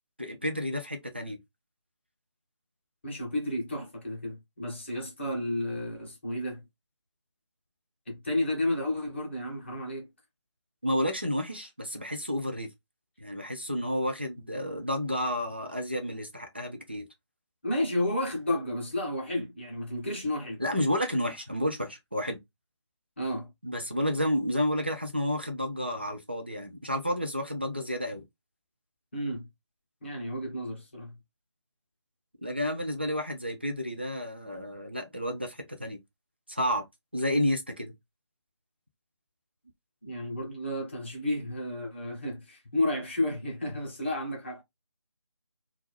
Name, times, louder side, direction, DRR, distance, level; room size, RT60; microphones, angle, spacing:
voice 1, 0.2-1.4 10.8-12.7 13.2-17.1 20.6-22.4 23.6-28.2 32.4-36.0 36.5-36.8 37.1-37.9, equal, 20° right, 0.3 m, -31 dB
voice 2, 3.0-6.6 8.1-10.1 17.6-20.6 23.2-23.5 29.1-29.5 30.0-31.2 40.0-44.6, left 1 dB, 25° left, 0.7 m, -32 dB
2.3 x 2.2 x 3.0 m
figure-of-eight pair, 160°, 15 cm